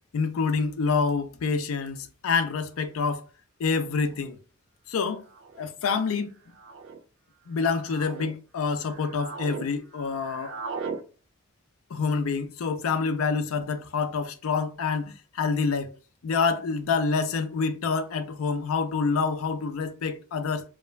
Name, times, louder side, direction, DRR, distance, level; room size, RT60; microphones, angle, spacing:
voice 1, 0.1-3.2 3.6-4.4 4.9-5.2 5.6-6.3 7.5-10.5 11.9-15.9 16.2-20.6, left 5 dB, 80° left, 0.4 m, -27 dB
sound 1, 2.9-3.0 4.0-4.3 5.3-5.7 6.5-7.0 7.6-8.3 8.8-9.7 9.9-11.0, right 5 dB, 65° right, 0.3 m, -38 dB
2.3 x 2.1 x 3.0 m
head